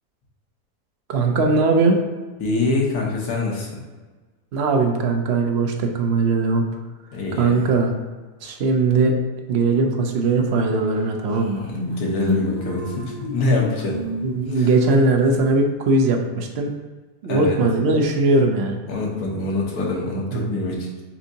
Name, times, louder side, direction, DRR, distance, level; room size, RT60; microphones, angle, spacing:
voice 1, 1.1-2.0 4.5-6.6 7.4-7.9 8.4-9.2 9.5-11.7 14.2-16.7 17.2-18.8 20.3-20.5, right 3 dB, 65° right, 3 dB, 0.7 m, -19 dB
voice 2, 2.4-3.8 7.1-7.7 11.7-14.0 14.5-14.7 17.3-17.6 18.9-20.9, left 2 dB, 80° left, -2 dB, 1.5 m, -25 dB
sound 1, 10.9-11.0 11.3-15.3, left 2 dB, 30° right, 1.1 m, -30 dB
7.1 x 2.7 x 2.7 m, 1.3 s
omnidirectional pair, 1.6 m